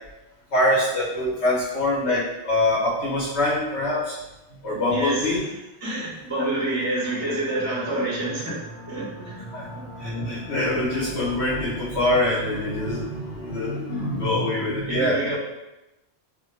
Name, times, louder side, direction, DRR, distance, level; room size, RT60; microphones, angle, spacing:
voice 1, 0.5-4.2 4.6-5.4 9.5-9.7 10.0-15.4, left 1 dB, 80° left, -9 dB, 1.8 m, -24 dB
voice 2, 4.9-5.4 5.8-9.4 14.9-15.4, right 1 dB, 20° right, -6 dB, 0.6 m, -28 dB
sound 1, 6.5-14.6, right 1 dB, 50° right, 0.8 m, -39 dB
3.3 x 2.2 x 2.8 m, 0.97 s
omnidirectional pair, 1.1 m